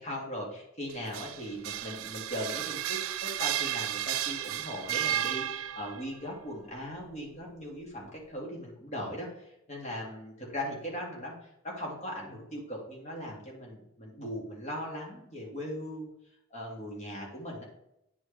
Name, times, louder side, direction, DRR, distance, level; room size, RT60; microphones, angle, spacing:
voice 1, 0.0-16.1 16.5-17.6, equal, 35° left, -2 dB, 2.1 m, -39 dB
sound 1, 0.9-6.1, right 11 dB, 90° right, 0.4 m, -33 dB
9.6 x 4.5 x 3.3 m, 0.83 s
head